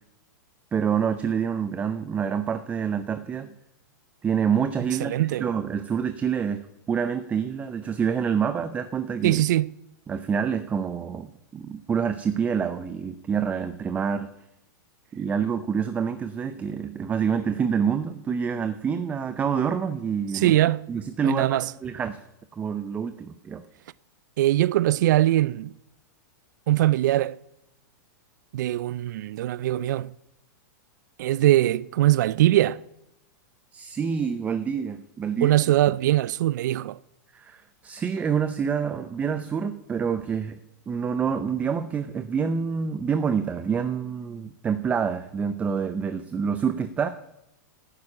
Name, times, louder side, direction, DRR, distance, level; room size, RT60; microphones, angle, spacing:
voice 1, 0.7-3.5 4.2-9.4 10.1-14.3 15.1-20.5 20.9-22.2 22.5-23.6 33.7-35.6 37.3-40.6 40.9-47.1, right 7 dB, 15° right, 0.5 m, -27 dB
voice 2, 5.0-5.5 9.2-9.7 20.3-20.9 21.2-21.7 24.4-25.7 26.7-27.4 28.5-30.1 31.2-32.8 35.4-37.0, right 14 dB, 65° right, 0.4 m, -22 dB
11.5 x 9.6 x 8.5 m
supercardioid pair, 150°, 10 cm